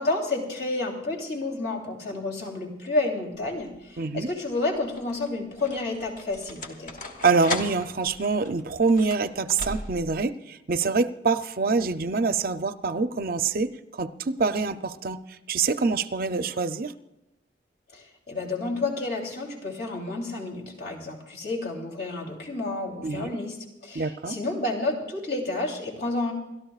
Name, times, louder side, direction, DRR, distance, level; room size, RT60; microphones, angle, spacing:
voice 1, 0.0-6.9 17.9-23.5 23.8-26.3, left 2 dB, 60° left, -1 dB, 3.2 m, -30 dB
sound 1, 3.4-3.9 4.7-10.2, left 2 dB, 45° left, 1.3 m, -38 dB
voice 2, 4.0-4.3 7.2-15.2 15.5-16.9 23.0-23.3 23.9-24.4, right 4 dB, 50° right, 11 dB, 0.5 m, -25 dB
28.5 x 13.0 x 2.4 m, 0.96 s
head